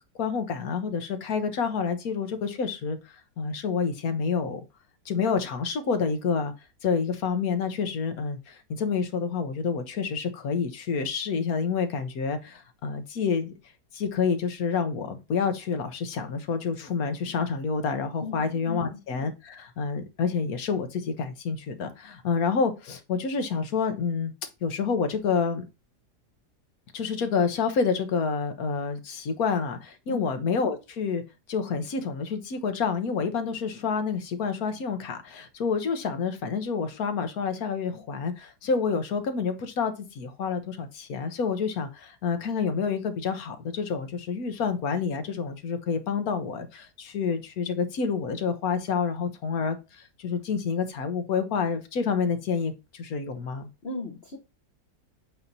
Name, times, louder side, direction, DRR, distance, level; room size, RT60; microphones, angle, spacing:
voice 1, 0.2-3.0 3.4-4.6 5.0-6.5 6.8-13.5 13.9-24.3 24.6-25.6 26.9-31.2 31.5-53.7, left 5 dB, 65° left, 1.4 m, -28 dB
voice 2, 18.2-19.0 30.1-30.3 53.8-54.4, left 3 dB, 45° left, 1.1 m, -36 dB
7.9 x 2.8 x 5.3 m
omnidirectional pair, 1.8 m